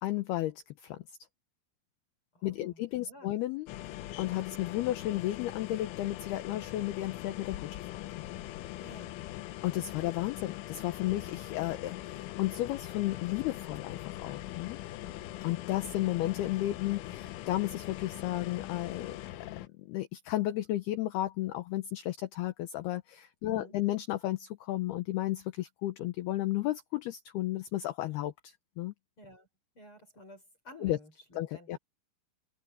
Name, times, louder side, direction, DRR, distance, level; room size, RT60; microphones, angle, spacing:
voice 1, 0.0-1.0 2.4-7.8 9.6-14.8 15.4-19.2 19.8-28.9 30.8-31.0 31.4-31.8, left 15 dB, 70° left, 2.6 m, -33 dB
voice 2, 2.3-3.3 8.8-9.1 23.5-23.7 29.2-29.5 29.8-31.8, left 1 dB, 30° left, 5.5 m, -53 dB
sound 1, 3.7-19.7, left 15 dB, 90° left, 3.5 m, -42 dB
open air
omnidirectional pair, 5.4 m